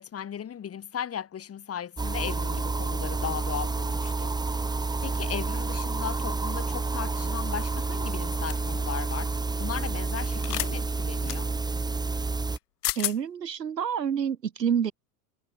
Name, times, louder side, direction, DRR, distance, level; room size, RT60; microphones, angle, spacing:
voice 1, 0.0-9.3 9.6-11.5, left 9 dB, 30° left, 6.9 m, -37 dB
sound 1, 2.0-12.6, right 3 dB, 10° right, 1.2 m, -29 dB
sound 2, 8.5-8.7 10.4-10.7 11.3-11.4 12.5-12.6 12.8-13.2, left 15 dB, 70° left, 5.4 m, -30 dB
voice 2, 12.9-14.9, right 8 dB, 85° right, 3.3 m, -28 dB
hypercardioid pair, 95°, 48 cm